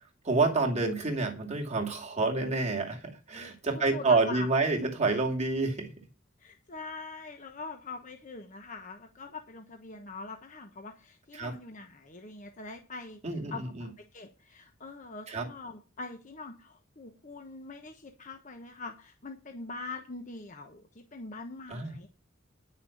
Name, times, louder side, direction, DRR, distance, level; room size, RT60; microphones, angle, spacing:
voice 1, 0.2-5.9 11.3-11.5 13.2-13.9 15.3-15.5 21.7-21.9, right 3 dB, 35° right, 1 dB, 2.4 m, -28 dB
voice 2, 3.7-4.5 6.4-13.2 13.5-20.8 21.1-22.1, left 3 dB, 40° left, 5 dB, 1.1 m, -43 dB
10.5 x 6.3 x 7.1 m, 0.33 s
head